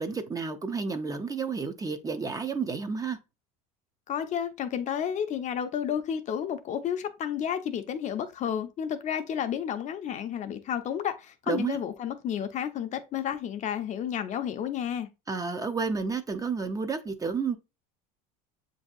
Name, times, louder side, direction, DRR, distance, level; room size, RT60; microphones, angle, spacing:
voice 1, 0.0-3.2 11.5-11.8 15.3-17.6, right 5 dB, 15° right, 0.5 m, -31 dB
voice 2, 4.1-15.1, left 9 dB, 40° left, 0.5 m, -31 dB
7.0 x 2.7 x 2.4 m
supercardioid pair, 115°, 20 cm